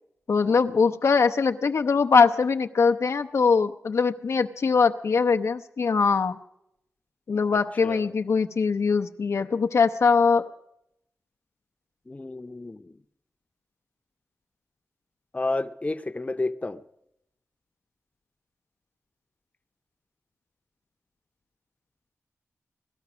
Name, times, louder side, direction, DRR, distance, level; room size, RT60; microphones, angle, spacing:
voice 1, 0.3-6.4 7.3-10.5, left 5 dB, 70° left, 7 dB, 0.6 m, -22 dB
voice 2, 12.1-12.9 15.3-16.8, left 2 dB, 25° left, 9 dB, 0.7 m, -31 dB
18.0 x 12.5 x 6.1 m, 0.79 s
cardioid pair, 50°, 5 cm